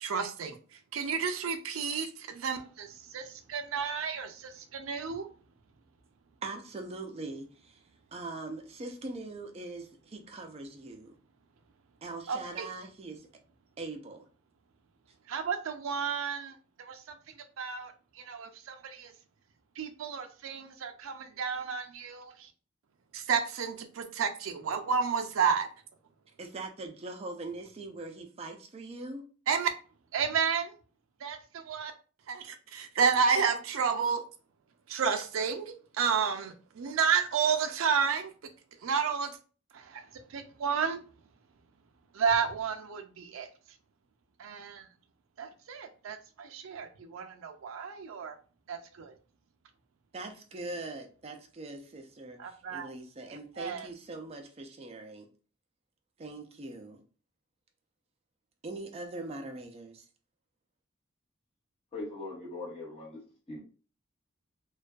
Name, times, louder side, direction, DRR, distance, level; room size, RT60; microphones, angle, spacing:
voice 1, 0.0-5.3 12.3-12.7 15.3-17.0 17.6-19.1 19.8-22.5 23.1-25.7 29.5-29.7 30.1-30.7 31.2-31.9 32.3-34.2 34.9-38.3 38.8-39.3 39.7-40.0 40.3-41.0 42.1-43.5 44.4-44.9 45.4-48.4 48.7-49.1 52.4-52.9 53.3-53.9, right 6 dB, 90° right, 0.4 m, -31 dB
voice 2, 6.4-7.8 8.1-11.2 12.0-13.3 13.8-14.2 26.4-29.3 50.1-55.3 56.2-57.0 58.6-60.1, right 2 dB, 30° right, 0.4 m, -42 dB
voice 3, 61.9-63.2 63.5-63.6, left 2 dB, 30° left, 1.1 m, -40 dB
2.5 x 2.3 x 2.2 m
head